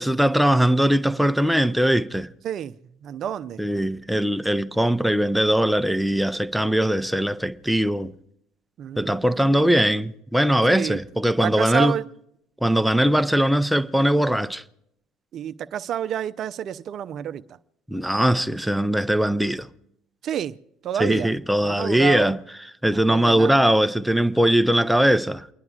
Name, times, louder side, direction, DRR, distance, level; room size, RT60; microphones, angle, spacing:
voice 1, 0.0-2.3 3.6-8.1 9.0-11.9 12.6-14.6 17.9-19.7 21.0-22.4 22.8-25.5, right 1 dB, ahead, 0.7 m, -20 dB
voice 2, 2.4-2.7 3.0-3.6 8.8-9.7 10.6-11.0 11.4-12.0 15.3-17.6 20.2-20.6 20.8-21.3 21.6-22.4 22.9-23.6, right 10 dB, 50° right, 0.5 m, -29 dB
29.5 x 10.5 x 2.4 m
hypercardioid pair, 60°, 0 cm